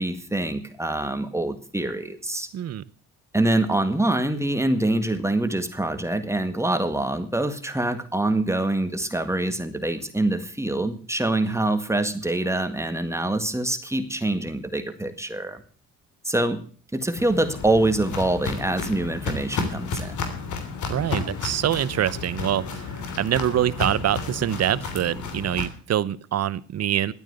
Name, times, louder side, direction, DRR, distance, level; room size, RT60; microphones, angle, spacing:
voice 1, 0.0-2.5 3.3-15.6 16.2-16.6 16.9-20.2, right 2 dB, 10° right, 8 dB, 1.8 m, -25 dB
voice 2, 2.5-2.8 20.9-27.1, right 11 dB, 55° right, 18 dB, 0.9 m, -25 dB
Walk footsteps, 17.2-25.6, left 4 dB, 75° left, 3.2 m, -32 dB
12.5 x 9.0 x 8.1 m, 0.42 s
cardioid pair, 90°, 30 cm